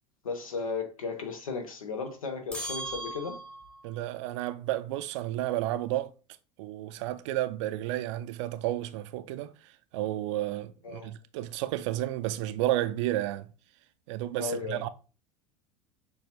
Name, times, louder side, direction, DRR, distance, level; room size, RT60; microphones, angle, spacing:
voice 1, 0.2-3.4 10.8-11.1 14.4-14.8, left 4 dB, 80° left, 0.9 m, -35 dB
sound 1, 2.5-3.9, right 1 dB, 5° left, 0.9 m, -38 dB
voice 2, 3.8-6.1 6.6-9.5 9.9-13.5 14.1-14.9, right 14 dB, 60° right, 0.4 m, -31 dB
6.8 x 2.3 x 2.8 m
figure-of-eight pair, 75°, 17 cm